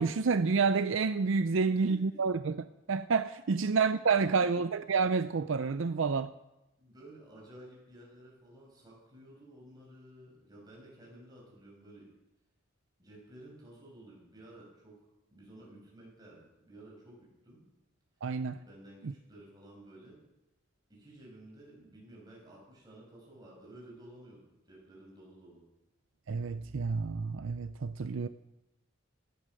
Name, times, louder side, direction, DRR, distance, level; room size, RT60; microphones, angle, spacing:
voice 1, 0.0-2.6 2.9-6.3 18.2-18.6 19.0-19.1 26.3-28.3, right 5 dB, 65° right, 0.5 m, -29 dB
voice 2, 1.5-2.3 3.5-3.7 5.9-6.1 6.8-12.1 13.0-15.0 15.3-17.6 18.6-20.2 20.9-25.6, right 1 dB, 20° right, 6.2 m, -53 dB
17.5 x 11.0 x 6.5 m
head